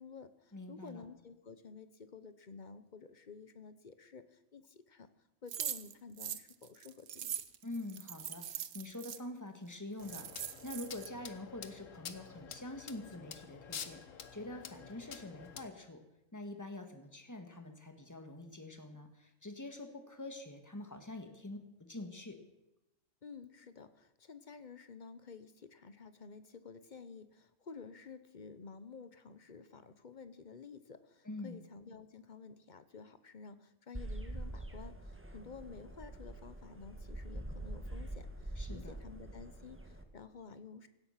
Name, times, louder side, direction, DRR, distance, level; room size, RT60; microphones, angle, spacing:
voice 1, 0.0-5.1 5.4-7.4 23.2-40.9, left 5 dB, 40° left, 12 dB, 0.9 m, -52 dB
voice 2, 0.5-1.0 7.6-16.0 16.3-22.4 31.2-31.6 38.5-39.0, left 2 dB, 15° left, 6 dB, 1.7 m, -46 dB
sound 1, 5.5-9.2 9.7-9.8 10.0-11.1, right 10 dB, 65° right, 1.1 m, -42 dB
sound 2, 10.0-15.7, left 7 dB, 70° left, 1.4 m, -49 dB
sound 3, 33.9-40.0, right 1 dB, 10° right, 1.3 m, -45 dB
17.0 x 12.5 x 5.8 m, 0.94 s
omnidirectional pair, 1.4 m